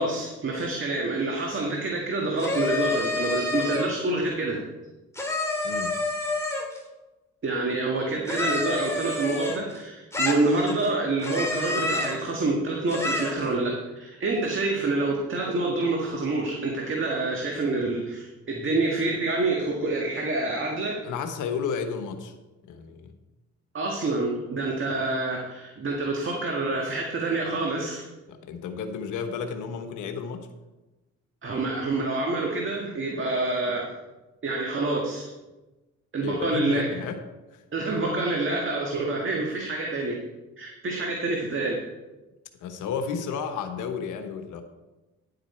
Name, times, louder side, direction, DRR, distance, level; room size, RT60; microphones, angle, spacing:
voice 1, 0.0-4.6 7.4-20.9 23.7-28.0 31.4-33.9 34.4-35.3 36.1-37.0 37.7-40.2 40.6-41.8, right 2 dB, 40° right, 0 dB, 1.7 m, -27 dB
sound 1, 2.4-4.0 5.2-6.8 8.3-9.8 10.1-10.9 11.2-12.3 12.9-13.5, left 2 dB, 10° left, 2.6 m, -28 dB
voice 2, 5.6-6.0 21.0-22.3 22.7-23.1 28.3-30.5 36.2-37.2 37.5-37.6 42.6-44.6, left 6 dB, 85° left, 6 dB, 1.2 m, -32 dB
10.5 x 8.2 x 4.4 m, 1.1 s
cardioid pair, 90°, 30 cm